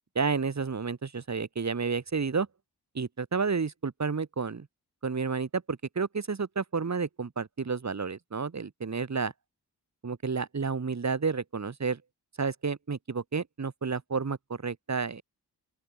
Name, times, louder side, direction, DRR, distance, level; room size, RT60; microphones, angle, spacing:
voice 1, 0.1-2.5 2.9-4.7 5.0-9.3 10.0-12.0 12.4-15.2, right 5 dB, 45° right, 1.1 m, -31 dB
open air
wide cardioid pair, 70°, 40 cm